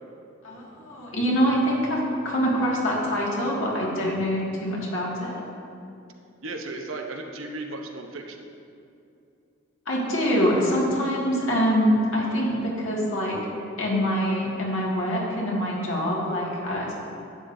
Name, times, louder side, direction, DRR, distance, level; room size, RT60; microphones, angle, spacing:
voice 1, 0.4-5.4 9.9-13.4 13.8-16.9, equal, 75° left, -4 dB, 2.0 m, -25 dB
voice 2, 6.4-8.4, right 2 dB, 90° right, 3 dB, 0.9 m, -35 dB
11.5 x 8.7 x 2.7 m, 2.6 s
head